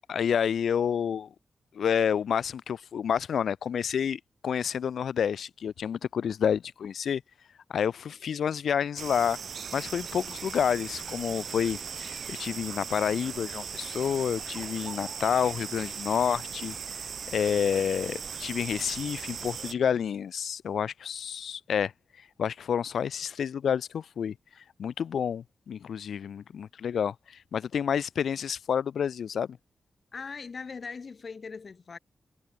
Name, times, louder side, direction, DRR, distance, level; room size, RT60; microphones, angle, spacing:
voice 1, 0.1-1.3 1.7-7.2 7.7-9.4 9.7-17.0 17.3-21.9 22.2-29.6, left 8 dB, 85° left, 0.4 m, -29 dB
sound 1, 9.0-19.7, right 6 dB, 60° right, 0.5 m, -38 dB
voice 2, 30.1-32.0, left 5 dB, 45° left, 2.1 m, -40 dB
wide cardioid pair, 140°, 0 cm